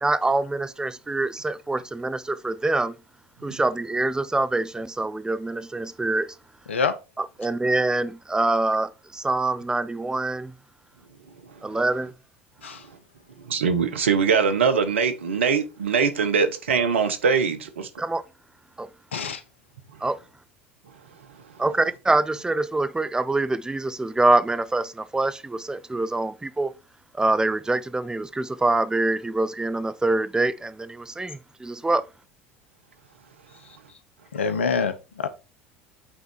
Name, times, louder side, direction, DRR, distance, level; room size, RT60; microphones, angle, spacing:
voice 1, 0.0-2.9 3.4-6.3 7.2-10.5 11.6-12.1 18.0-18.2 18.8-18.9 20.0-20.2 21.6-26.7 27.2-32.0, right 2 dB, 10° right, 0.8 m, -25 dB
voice 2, 13.4-17.9, right 6 dB, 85° right, 1.2 m, -22 dB
voice 3, 34.3-35.3, left 5 dB, 90° left, 1.0 m, -25 dB
8.5 x 4.0 x 4.6 m
hypercardioid pair, 80°, 6 cm